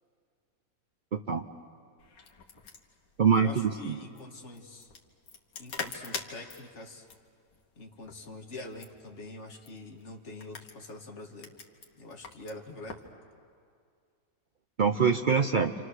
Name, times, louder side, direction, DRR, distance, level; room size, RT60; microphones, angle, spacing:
voice 1, 1.1-1.4 3.2-4.0 14.8-15.7, right 6 dB, 85° right, 5 dB, 0.4 m, -24 dB
sound 1, 2.0-13.1, left 5 dB, 85° left, 2.1 m, -45 dB
voice 2, 3.3-4.9 5.6-7.1 7.8-11.5 12.0-13.1, left 2 dB, 40° left, 2 dB, 1.9 m, -45 dB
28.5 x 27.0 x 6.5 m, 2.2 s
omnidirectional pair, 1.9 m